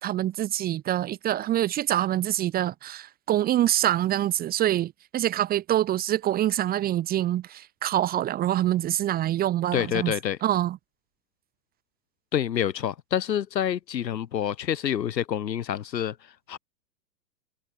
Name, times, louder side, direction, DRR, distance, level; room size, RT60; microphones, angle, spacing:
voice 1, 0.0-10.1 10.4-10.8, right 12 dB, 20° right, 0.8 m, -25 dB
voice 2, 9.7-10.4 12.3-16.2 16.5-16.6, left 9 dB, 85° left, 2.4 m, -27 dB
hypercardioid pair, 130°, 50 cm